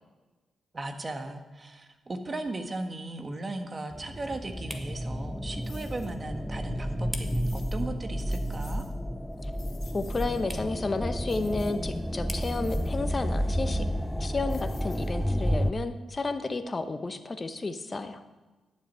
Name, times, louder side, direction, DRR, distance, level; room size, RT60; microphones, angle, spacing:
voice 1, 0.7-8.8, right 2 dB, 35° right, 6 dB, 1.5 m, -37 dB
sound 1, 1.1-15.9, right 1 dB, 15° right, 1.5 m, -51 dB
sound 2, 3.9-15.7, equal, 5° left, 0.5 m, -31 dB
sound 3, 5.6-6.2 7.2-7.8 8.2-8.9 9.3-10.5 11.3-12.0 12.4-13.0 14.5-15.3, left 6 dB, 65° left, 1.9 m, -53 dB
voice 2, 9.9-13.8 14.2-18.2, left 3 dB, 35° left, 9 dB, 0.9 m, -32 dB
11.0 x 7.2 x 5.6 m, 1.2 s
supercardioid pair, 50°, 0 cm